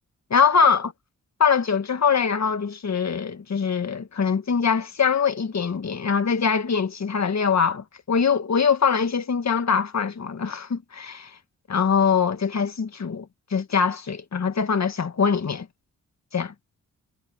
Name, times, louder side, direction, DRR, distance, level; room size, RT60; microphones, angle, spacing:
voice 1, 0.3-0.9 1.4-11.3 11.7-13.3 13.5-15.7 16.3-16.5, left 6 dB, 55° left, 1.8 m, -23 dB
cardioid pair, 60°, 33 cm